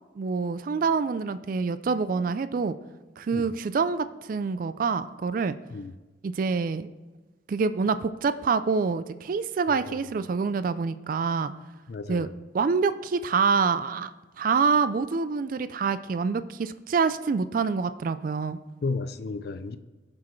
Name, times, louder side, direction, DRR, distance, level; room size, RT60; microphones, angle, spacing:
voice 1, 0.2-2.8 3.2-5.6 6.2-6.9 7.5-11.5 12.1-12.3 12.5-14.1 14.4-18.6, right 5 dB, 50° right, 0.3 m, -26 dB
voice 2, 11.9-12.3 18.8-19.8, left 3 dB, 60° left, 0.5 m, -33 dB
15.5 x 6.1 x 3.2 m
head